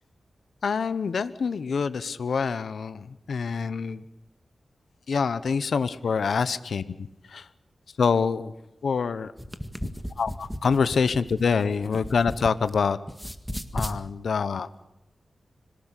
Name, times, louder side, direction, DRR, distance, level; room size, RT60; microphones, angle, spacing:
voice 1, 0.6-4.0 5.1-7.5 8.0-8.5 8.8-9.3 10.2-13.0 13.7-14.7, left 5 dB, 80° left, 14 dB, 0.9 m, -26 dB
sound 1, 9.4-12.8 13.1-14.0, equal, ahead, 1.8 m, -35 dB
25.5 x 18.0 x 8.3 m, 0.91 s
wide cardioid pair, 75°, 0 cm